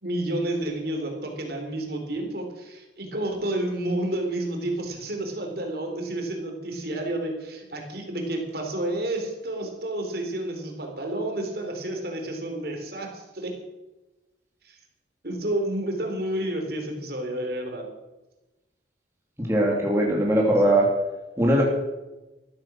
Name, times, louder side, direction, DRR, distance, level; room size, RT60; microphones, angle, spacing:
voice 1, 0.0-13.5 14.6-14.8 15.2-17.9, right 1 dB, 55° right, 2 dB, 3.8 m, -30 dB
voice 2, 19.4-20.9 21.4-21.6, right 1 dB, 15° right, -2 dB, 2.9 m, -20 dB
14.5 x 13.5 x 6.2 m, 1.0 s
head